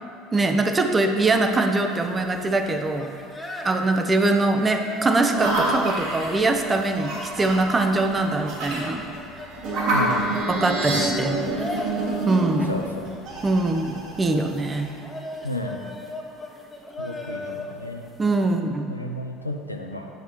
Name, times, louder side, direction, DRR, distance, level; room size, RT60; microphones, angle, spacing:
voice 1, 0.3-3.1 3.6-9.1 10.5-11.4 12.3-12.8 13.4-14.9 18.2-18.9, right 2 dB, 20° right, 5 dB, 0.6 m, -22 dB
sound 1, 1.2-18.6, left 1 dB, 10° left, 0.9 m, -39 dB
sound 2, 5.3-14.9, right 2 dB, 55° right, 1.4 m, -28 dB
sound 3, 8.8-11.0, right 2 dB, 70° right, 1.7 m, -35 dB
voice 2, 9.9-10.3 12.6-13.1 15.4-15.8 17.0-18.0 18.9-20.1, left 1 dB, 90° left, 3 dB, 0.4 m, -32 dB
7.9 x 6.7 x 3.1 m, 2.5 s
figure-of-eight pair, 65°, 0 cm